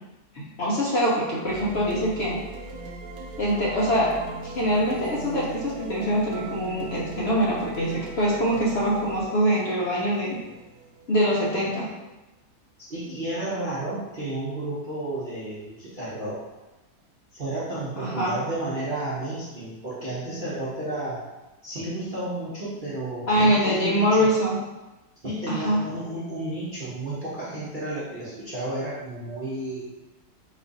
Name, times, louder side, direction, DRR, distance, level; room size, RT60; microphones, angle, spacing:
voice 1, 0.3-2.4 3.4-10.4 11.1-11.9 18.0-18.4 23.3-24.6 25.5-25.8, equal, 55° left, -5 dB, 0.8 m, -24 dB
sound 1, 1.5-11.6, right 2 dB, 85° right, 1.2 m, -39 dB
voice 2, 12.9-16.4 17.3-21.2 21.6-24.3 25.2-29.8, right 2 dB, 40° right, -10 dB, 0.8 m, -32 dB
4.1 x 2.5 x 3.9 m, 1.1 s
omnidirectional pair, 1.8 m